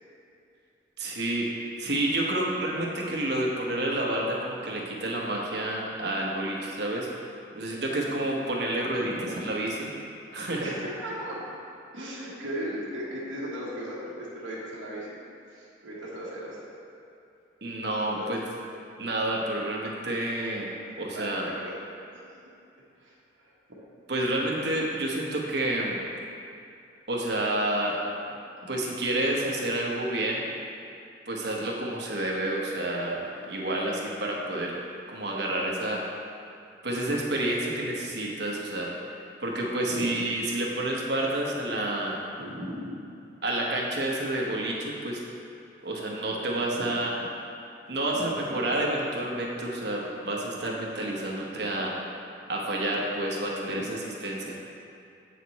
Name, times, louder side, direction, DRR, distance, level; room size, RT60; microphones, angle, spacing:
voice 1, 1.0-7.1 7.5-9.9 10.3-10.7 17.6-18.4 19.0-21.5 24.1-26.0 27.1-28.0 28.7-30.5 31.3-34.8 35.1-36.1 36.8-38.9 39.4-42.2 43.4-45.2 45.8-47.1 47.9-51.9 52.5-54.6, right 1 dB, 60° right, -2 dB, 1.0 m, -29 dB
voice 2, 9.0-9.5 10.6-11.4 11.9-15.2 15.5-16.6 18.1-18.3 20.8-21.8 22.1-22.4 23.0-23.8 28.7-28.8 39.9-40.3 42.4-42.9 46.8-46.9 48.1-48.7 53.6-53.9, equal, 90° right, -7 dB, 1.4 m, -37 dB
8.2 x 4.7 x 4.1 m, 2.6 s
head